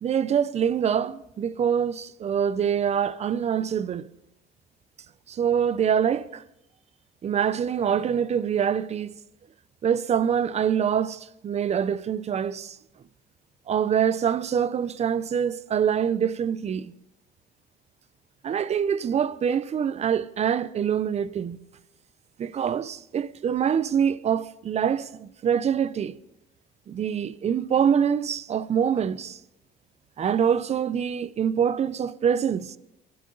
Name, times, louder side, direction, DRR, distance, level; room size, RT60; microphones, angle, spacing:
voice 1, 0.0-4.1 5.3-6.4 7.2-9.1 9.8-12.8 13.7-16.9 18.4-21.6 22.4-26.2 26.9-29.4 30.2-32.8, right 8 dB, 40° right, 0.7 m, -25 dB
23.5 x 12.0 x 4.0 m
cardioid pair, 110°, 17 cm